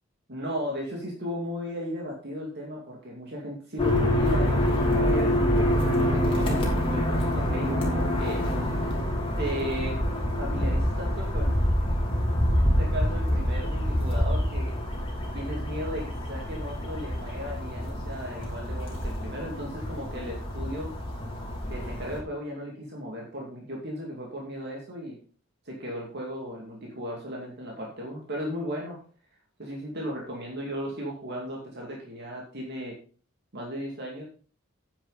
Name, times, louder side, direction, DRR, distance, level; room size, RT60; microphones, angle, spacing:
voice 1, 0.3-8.9 9.4-10.0 10.4-11.8 12.5-14.8 15.3-21.0 21.7-25.2 25.6-29.0 29.6-33.0 33.5-34.2, equal, 55° right, -1 dB, 2.5 m, -36 dB
sound 1, 3.8-22.2, equal, 25° left, 3.0 m, -26 dB
10.0 x 8.9 x 4.1 m, 0.40 s
head